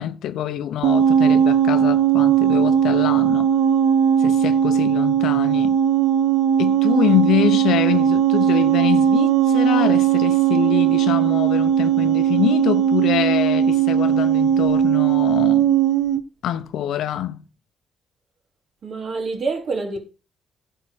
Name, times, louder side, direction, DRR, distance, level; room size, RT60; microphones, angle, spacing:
voice 1, 0.0-3.5 4.2-5.8 6.6-15.7 16.4-17.4, left 11 dB, 80° left, 0.8 m, -25 dB
sound 1, 0.8-16.2, right 9 dB, 80° right, 0.6 m, -18 dB
voice 2, 18.8-20.0, right 3 dB, 55° right, 2.9 m, -26 dB
11.0 x 4.5 x 6.1 m
cardioid pair, 90°, 0 cm